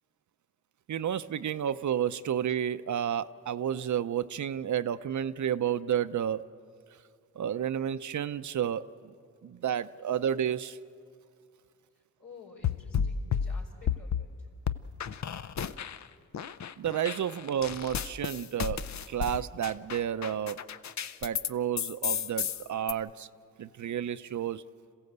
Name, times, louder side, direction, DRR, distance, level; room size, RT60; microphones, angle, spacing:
voice 1, 0.9-6.5 7.4-8.8 9.4-10.8 16.8-20.6 21.2-23.3 23.6-24.6, right 9 dB, 60° right, 13 dB, 0.6 m, -31 dB
voice 2, 11.9-14.5, left 4 dB, 70° left, -1 dB, 4.5 m, -52 dB
sound 1, 12.6-14.3 14.7-16.1 16.3-21.5 21.8-22.9, left 8 dB, 55° left, 0.7 m, -32 dB
26.5 x 15.5 x 8.1 m, 2.3 s
cardioid pair, 65°, 34 cm